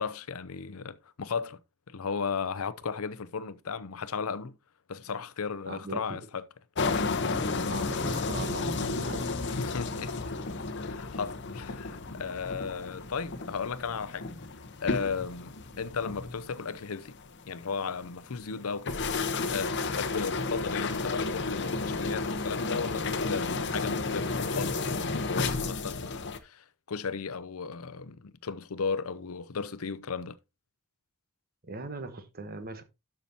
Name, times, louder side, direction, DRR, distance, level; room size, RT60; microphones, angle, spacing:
voice 1, 0.0-1.6 1.9-4.6 4.9-6.5 9.5-10.1 10.8-14.3 14.8-17.2 17.5-19.0 19.5-30.4, left 5 dB, 75° left, 0.6 m, -35 dB
voice 2, 5.7-6.2 7.7-9.3 15.7-15.9 31.6-32.8, right 2 dB, 45° right, 1.1 m, -40 dB
sound 1, 6.8-26.4, left 3 dB, 55° left, 0.9 m, -32 dB
12.5 x 5.9 x 2.8 m
head